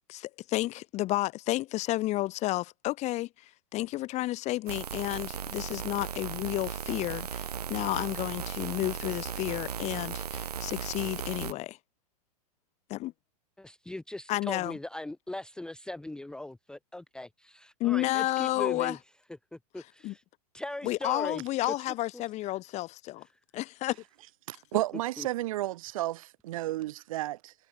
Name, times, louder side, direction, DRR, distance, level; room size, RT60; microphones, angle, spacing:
voice 1, 0.1-11.8 12.9-13.1 14.3-14.8 17.8-19.0 20.0-20.1 20.8-23.3 23.5-24.0, left 17 dB, 35° left, 1.6 m, -31 dB
sound 1, 4.7-11.5, right 8 dB, 80° right, 1.8 m, -36 dB
voice 2, 13.6-19.0 19.5-20.2 20.5-21.7 25.2-25.3, left 1 dB, 5° left, 0.9 m, -39 dB
voice 3, 24.5-27.5, right 16 dB, 60° right, 3.3 m, -32 dB
hypercardioid pair, 105°, 20 cm